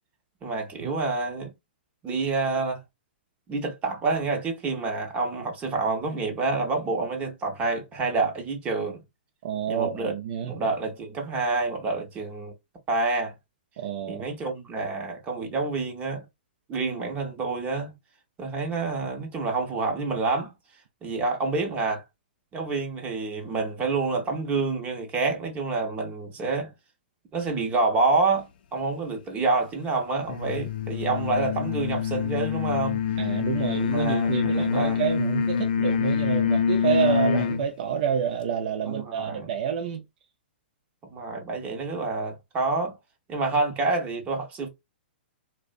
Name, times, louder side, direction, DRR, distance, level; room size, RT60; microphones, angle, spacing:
voice 1, 0.4-1.5 2.0-2.8 3.5-9.0 9.7-10.1 10.4-12.5 12.9-13.3 14.1-16.3 16.7-18.0 18.4-20.5 21.0-22.0 22.5-26.7 27.3-33.0 33.7-35.0 38.9-39.5 41.0-43.0 43.3-44.7, right 3 dB, 25° right, 0.7 m, -28 dB
voice 2, 9.4-10.5 13.8-14.2 33.2-40.0, right 8 dB, 55° right, 0.4 m, -28 dB
sound 1, 30.3-37.7, left 6 dB, 55° left, 0.4 m, -25 dB
2.5 x 2.1 x 2.4 m
hypercardioid pair, 120°, 6 cm